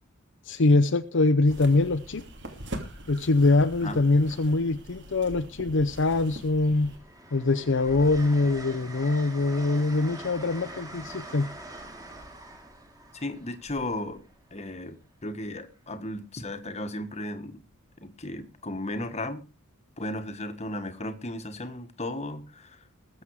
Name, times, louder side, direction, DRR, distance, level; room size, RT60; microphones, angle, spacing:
voice 1, 0.4-2.2 3.1-6.9 7.3-11.5, left 2 dB, 55° left, 0.7 m, -23 dB
sound 1, 1.5-7.0, right 1 dB, 55° right, 2.9 m, -42 dB
Train, 5.0-5.6 6.0-14.8 16.4-16.6, right 1 dB, 15° right, 2.5 m, -44 dB
voice 2, 13.1-14.2 14.5-17.6 18.0-19.5 20.0-22.8, left 1 dB, 30° left, 1.4 m, -35 dB
21.0 x 7.7 x 4.8 m
head